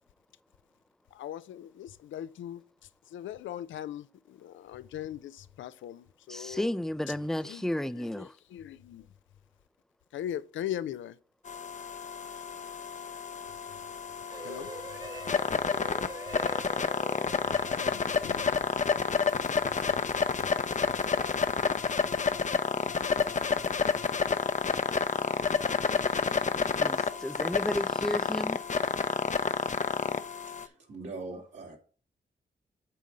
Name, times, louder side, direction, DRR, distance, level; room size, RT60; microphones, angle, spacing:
voice 1, 1.1-6.7 7.1-7.2 7.4-9.1 10.1-11.2 14.4-14.7 17.5-18.5 19.7-19.8, left 11 dB, 85° left, 0.4 m, -40 dB
voice 2, 6.3-8.3 26.8-28.6, left 1 dB, ahead, 0.4 m, -32 dB
sound 1, 11.5-30.7, left 5 dB, 40° left, 0.6 m, -29 dB
sound 2, 14.3-21.4, right 2 dB, 20° right, 0.9 m, -46 dB
voice 3, 30.6-31.8, right 3 dB, 75° right, 2.3 m, -41 dB
8.4 x 3.8 x 5.2 m
supercardioid pair, 45°, 19 cm